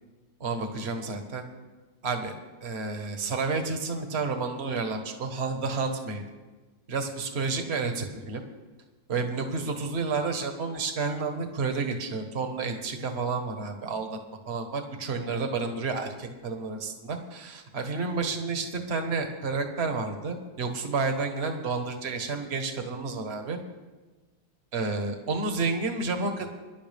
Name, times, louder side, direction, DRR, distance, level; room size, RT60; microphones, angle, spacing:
voice 1, 0.4-1.4 2.0-2.3 2.6-6.2 6.9-8.4 9.1-14.1 14.5-23.6 24.7-26.5, right 4 dB, 40° right, 5 dB, 1.6 m, -30 dB
24.5 x 11.5 x 3.5 m, 1.2 s
omnidirectional pair, 1.9 m